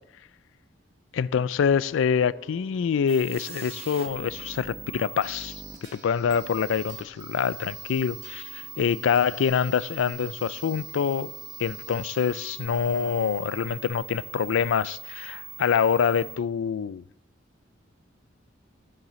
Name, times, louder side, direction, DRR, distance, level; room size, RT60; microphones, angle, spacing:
voice 1, 1.1-5.6 5.9-11.3 11.6-17.0, left 7 dB, 80° left, 0.3 m, -25 dB
Piano, 1.6-13.8, right 1 dB, 55° right, 1.9 m, -55 dB
sound 1, 3.1-16.4, right 6 dB, 30° right, 1.0 m, -41 dB
sound 2, 5.2-14.2, right 3 dB, 70° right, 4.5 m, -55 dB
17.0 x 7.4 x 3.1 m
head